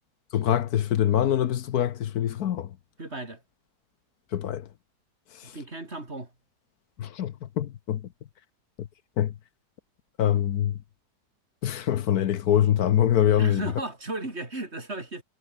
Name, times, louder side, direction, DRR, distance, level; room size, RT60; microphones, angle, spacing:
voice 1, 0.3-2.7 4.3-4.7 5.4-5.5 7.0-8.0 8.8-8.9 9.2-9.3 10.2-10.8 11.6-13.6, left 11 dB, 70° left, 1.3 m, -24 dB
voice 2, 3.0-3.4 5.4-6.3 13.4-15.2, right 2 dB, 40° right, 4.5 m, -35 dB
omnidirectional pair, 1.7 m